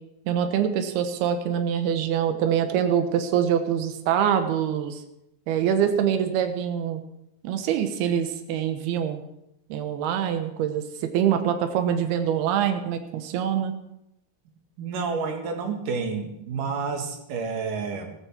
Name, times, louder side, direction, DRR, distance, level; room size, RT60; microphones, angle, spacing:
voice 1, 0.3-5.0 5.5-7.0 7.4-9.2 9.7-13.7, right 9 dB, 80° right, 7 dB, 3.1 m, -24 dB
voice 2, 14.8-18.1, right 5 dB, 60° right, 4 dB, 3.0 m, -30 dB
14.5 x 14.5 x 4.5 m, 0.84 s
omnidirectional pair, 4.6 m